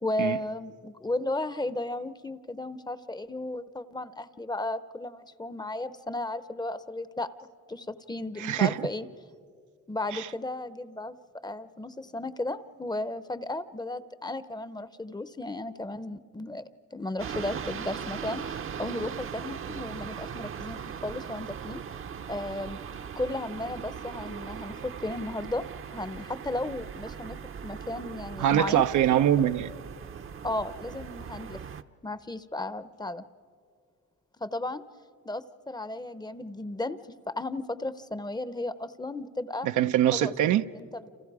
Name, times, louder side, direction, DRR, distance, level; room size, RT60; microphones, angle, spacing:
voice 1, 0.0-7.3 7.7-9.1 9.9-11.1 11.4-16.6 16.9-21.8 22.3-22.8 23.2-25.6 25.9-28.9 30.4-31.6 32.0-33.2 34.4-34.8 35.2-39.7 40.1-40.3 40.8-41.1, left 2 dB, 15° left, 0.7 m, -34 dB
voice 2, 8.4-8.9 10.1-10.3 28.4-29.7 39.6-40.6, right 11 dB, 80° right, 0.7 m, -23 dB
sound 1, 17.2-31.8, right 7 dB, 45° right, 0.8 m, -39 dB
30.0 x 27.5 x 4.8 m
cardioid pair, 90°, 30 cm